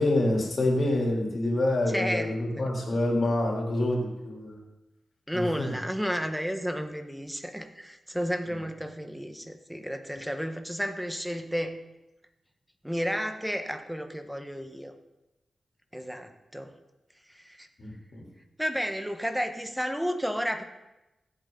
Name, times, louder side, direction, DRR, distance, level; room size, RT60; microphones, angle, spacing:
voice 1, 0.0-4.6 5.3-5.7 8.5-8.6 17.8-18.2, left 1 dB, 60° left, -1 dB, 3.7 m, -27 dB
voice 2, 1.9-2.3 5.3-11.8 12.8-14.9 15.9-16.7 17.3-17.7 18.6-20.6, equal, 5° right, 6 dB, 1.5 m, -32 dB
15.5 x 8.3 x 4.1 m, 0.98 s
cardioid pair, 50°, 0 cm